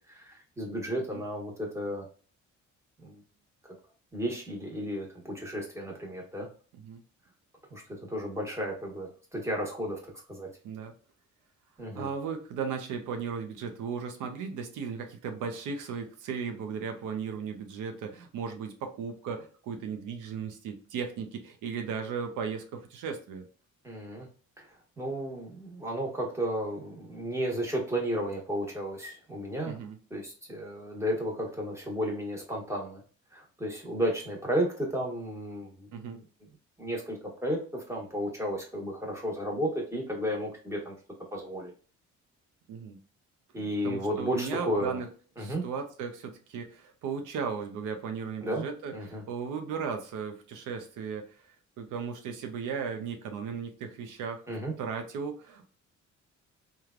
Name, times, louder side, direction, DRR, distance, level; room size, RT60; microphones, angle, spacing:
voice 1, 0.1-2.1 3.0-3.2 4.1-6.5 7.7-7.8 8.1-10.5 11.8-12.1 23.8-24.3 24.6-24.7 25.0-29.8 30.1-33.0 33.3-36.2 36.8-40.9 41.3-41.7 43.5-45.0 45.4-45.6 48.4-48.7 48.9-49.2 54.5-54.7, equal, 10° right, -1 dB, 1.1 m, -33 dB
voice 2, 11.9-23.4 29.7-30.0 35.9-36.2 42.7-43.0 43.8-45.1 45.4-51.2 51.8-55.7, right 6 dB, 85° right, 5 dB, 0.6 m, -36 dB
3.2 x 2.3 x 2.4 m, 0.40 s
cardioid pair, 90°, 30 cm